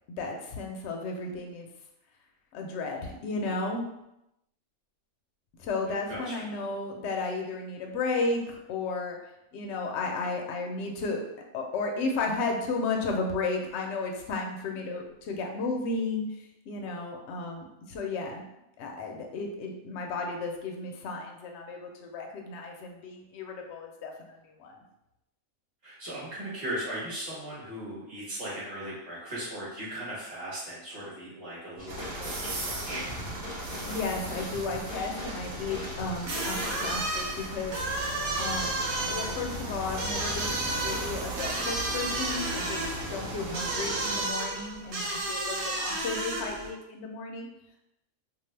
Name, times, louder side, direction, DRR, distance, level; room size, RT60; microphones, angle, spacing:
voice 1, 0.1-1.7 2.5-3.8 5.6-9.2 9.5-11.2 11.5-18.4 18.8-24.7 33.8-37.8 38.4-38.8 39.1-47.5, left 3 dB, 65° left, 2 dB, 0.8 m, -33 dB
voice 2, 6.1-6.4 25.8-33.1, right 1 dB, 25° right, -8 dB, 1.2 m, -38 dB
sound 1, 31.8-37.1, left 1 dB, 25° left, 0.6 m, -41 dB
sound 2, 31.9-44.3, right 1 dB, 90° right, 1.1 m, -37 dB
sound 3, 36.2-46.7, right 2 dB, 60° right, 0.9 m, -32 dB
2.6 x 2.4 x 3.2 m, 0.85 s
omnidirectional pair, 1.5 m